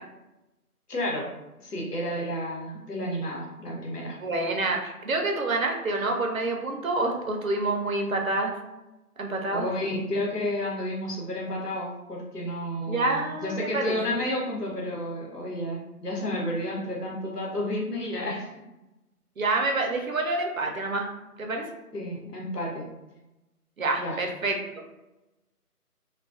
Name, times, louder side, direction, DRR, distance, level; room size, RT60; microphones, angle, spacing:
voice 1, 0.9-1.3 1.6-4.2 9.5-18.5 21.9-22.9 24.0-24.2, left 1 dB, 90° left, -2 dB, 1.1 m, -31 dB
voice 2, 4.2-8.6 9.2-9.7 12.9-14.0 19.4-21.1 21.4-21.7 23.8-25.0, right 2 dB, 65° right, 2 dB, 0.6 m, -27 dB
2.3 x 2.3 x 2.4 m, 0.98 s
figure-of-eight pair, 165°, 46 cm